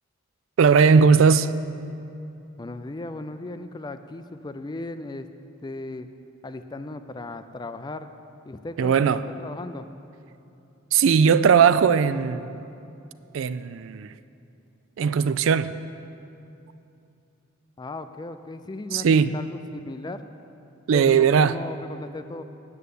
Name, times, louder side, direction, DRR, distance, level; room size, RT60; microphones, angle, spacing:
voice 1, 0.6-1.5 8.8-9.2 10.9-12.6 13.3-14.1 15.0-15.7 18.9-19.3 20.9-21.6, right 6 dB, 65° right, 0.3 m, -18 dB
voice 2, 2.6-5.3 5.6-6.1 6.4-8.1 8.5-9.9 17.8-20.2 20.9-22.4, left 2 dB, 20° left, 0.4 m, -36 dB
9.6 x 6.7 x 8.3 m
head